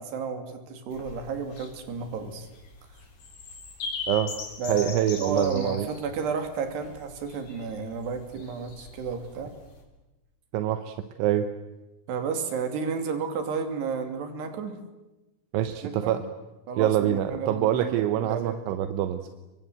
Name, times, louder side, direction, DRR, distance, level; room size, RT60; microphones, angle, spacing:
voice 1, 0.0-2.5 4.6-4.9 5.2-9.5 12.1-14.8 15.8-16.2 16.7-18.6, right 5 dB, 65° right, 7 dB, 4.8 m, -32 dB
sound 1, 0.9-9.8, left 5 dB, 65° left, 6.0 m, -41 dB
voice 2, 4.7-5.9 10.5-11.5 15.5-16.2 16.8-19.3, right 11 dB, 85° right, 9 dB, 3.5 m, -25 dB
29.5 x 23.5 x 8.1 m, 1.1 s
omnidirectional pair, 5.3 m